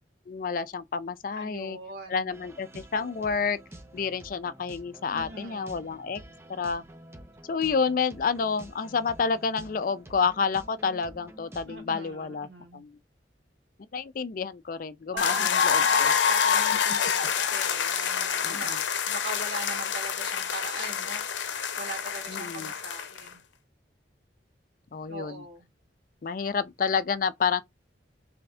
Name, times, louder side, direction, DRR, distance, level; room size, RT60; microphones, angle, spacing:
voice 1, 0.3-1.8 2.1-3.6 3.9-6.2 6.5-6.8 7.4-12.5 12.7-12.9 13.9-16.1 18.4-18.8 22.3-22.7 24.9-25.4 26.2-27.6, left 5 dB, 50° left, 0.4 m, -29 dB
voice 2, 1.4-2.4 5.1-5.9 11.7-12.8 15.1-18.8 19.1-21.2 21.8-23.4 25.1-25.7, right 2 dB, 65° right, 2.1 m, -41 dB
sound 1, 2.3-11.8, right 1 dB, 15° right, 0.5 m, -48 dB
sound 2, 15.2-23.3, left 7 dB, 90° left, 0.7 m, -27 dB
3.4 x 3.4 x 3.6 m
head